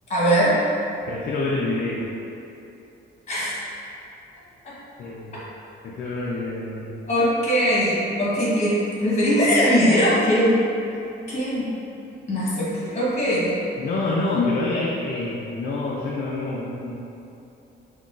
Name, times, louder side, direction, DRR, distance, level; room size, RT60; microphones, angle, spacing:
voice 1, 0.1-0.6 3.3-3.5 4.6-4.8 5.3-5.4 7.1-10.6 11.3-11.7 12.3-13.6 14.3-14.4, equal, 35° left, -8 dB, 1.2 m, -21 dB
voice 2, 1.1-2.1 5.0-5.4 5.8-7.0 13.8-17.0, left 2 dB, 55° left, -4 dB, 0.4 m, -27 dB
5.7 x 2.3 x 2.5 m, 2.7 s
cardioid pair, 145°, 19 cm